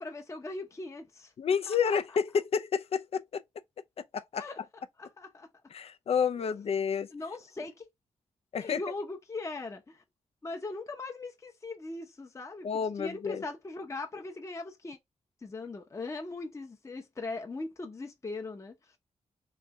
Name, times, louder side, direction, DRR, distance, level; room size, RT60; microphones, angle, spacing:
voice 1, 0.0-1.3 1.7-2.0 4.4-4.6 5.0-5.5 6.4-6.5 7.1-7.9 8.6-10.0 10.4-15.0 15.4-18.7, left 3 dB, 25° left, 0.7 m, -40 dB
voice 2, 1.4-3.4 4.0-4.4 5.7-7.1 8.5-8.8 12.6-13.4, left 6 dB, 60° left, 0.5 m, -30 dB
3.1 x 2.7 x 3.5 m
cardioid pair, 75°, 12 cm